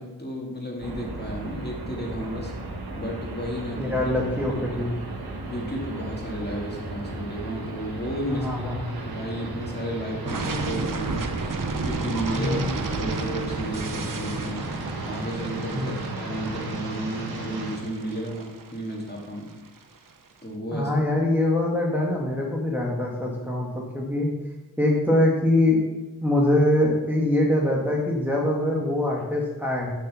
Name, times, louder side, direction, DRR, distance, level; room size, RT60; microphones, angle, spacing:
voice 1, 0.0-4.0 4.5-4.6 5.4-8.7 9.0-11.3 11.8-14.6 15.1-19.5 20.4-20.9, equal, 25° left, -2 dB, 2.3 m, -33 dB
sound 1, 0.8-17.8, right 2 dB, 90° right, 1.4 m, -35 dB
voice 2, 3.8-4.9 8.3-8.8 12.3-12.7 15.7-15.9 20.7-24.3 24.8-25.8 26.2-29.9, left 1 dB, 5° right, -3 dB, 1.5 m, -23 dB
sound 2, 10.3-20.1, right 3 dB, 60° right, 0.9 m, -32 dB
7.4 x 5.5 x 6.8 m, 1.1 s
wide cardioid pair, 75°, 36 cm